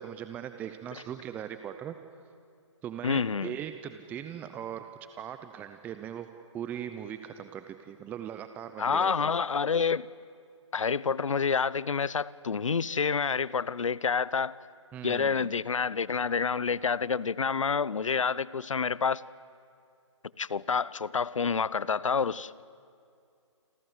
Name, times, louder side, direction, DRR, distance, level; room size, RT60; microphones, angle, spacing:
voice 1, 0.0-2.0 2.8-4.9 5.2-9.3 14.9-15.5, right 9 dB, 10° right, 9 dB, 0.7 m, -40 dB
voice 2, 3.0-3.5 8.8-10.1 10.7-14.5 15.0-19.2 20.4-22.6, left 5 dB, 80° left, 21 dB, 0.8 m, -28 dB
28.5 x 23.0 x 8.1 m, 2.5 s
hypercardioid pair, 150°, 16 cm